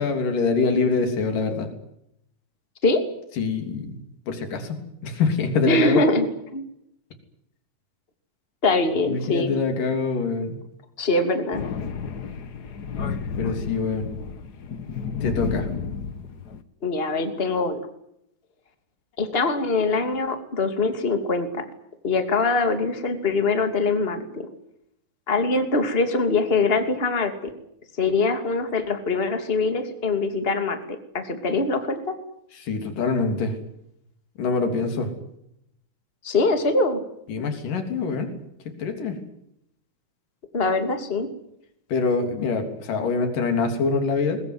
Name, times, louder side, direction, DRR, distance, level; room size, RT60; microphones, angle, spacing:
voice 1, 0.0-1.7 3.4-4.0 4.3-6.0 9.0-10.6 13.4-14.1 15.2-15.7 32.6-33.5 34.4-35.1 37.3-38.3 38.8-39.2 41.9-44.4, left 4 dB, 80° left, 6 dB, 4.9 m, -24 dB
voice 2, 5.6-6.3 6.5-6.6 8.6-9.5 11.0-11.6 16.8-17.8 19.2-21.6 22.0-24.5 25.3-27.5 28.0-30.8 31.1-32.2 36.2-37.0 40.5-41.3, left 3 dB, 20° left, 7 dB, 2.6 m, -23 dB
Thunder, 11.5-16.6, left 5 dB, 60° left, 1.0 m, -31 dB
22.5 x 21.5 x 9.6 m, 0.77 s
omnidirectional pair, 3.8 m